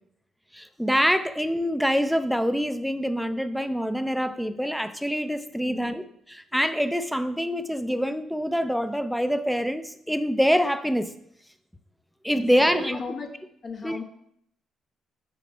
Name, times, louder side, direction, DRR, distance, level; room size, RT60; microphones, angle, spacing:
voice 1, 0.5-11.1 12.2-13.0 13.8-14.0, equal, ahead, 10 dB, 0.5 m, -25 dB
voice 2, 12.3-13.3 13.6-14.0, left 4 dB, 45° left, 3 dB, 1.1 m, -36 dB
5.9 x 5.0 x 4.4 m, 0.71 s
cardioid pair, 90°, 0 cm